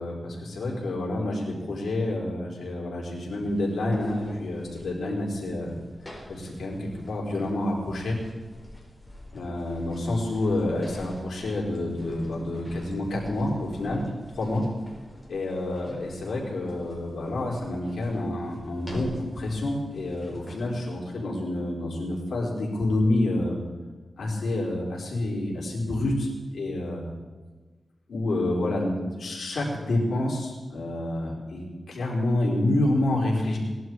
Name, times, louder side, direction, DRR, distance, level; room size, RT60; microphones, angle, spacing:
voice 1, 0.0-5.7 6.3-8.2 9.3-14.0 14.3-14.6 15.3-23.6 24.2-27.1 28.1-33.6, left 1 dB, 80° left, -3 dB, 4.5 m, -28 dB
sound 1, 3.4-20.7, left 1 dB, 15° left, 4.6 m, -47 dB
20.0 x 11.5 x 4.8 m, 1.3 s
wide cardioid pair, 85°, 0 cm